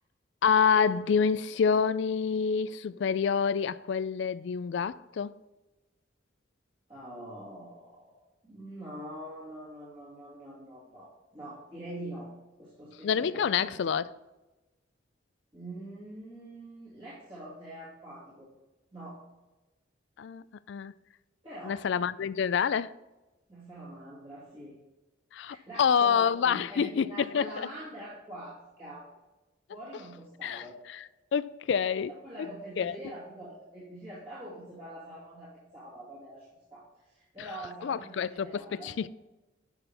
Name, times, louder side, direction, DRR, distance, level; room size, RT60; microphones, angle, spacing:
voice 1, 0.4-5.4 13.0-14.1 20.2-20.9 21.6-22.9 25.3-27.7 30.4-31.0 31.3-32.1 32.8-32.9 37.8-39.1, left 6 dB, 65° left, 0.3 m, -27 dB
voice 2, 6.9-8.1 8.4-12.3 12.6-13.8 15.5-18.5 18.9-19.2 21.4-21.8 23.5-24.7 25.4-29.0 29.7-30.8 32.0-38.9, right 1 dB, 30° right, 2.3 m, -44 dB
11.0 x 5.9 x 3.4 m
head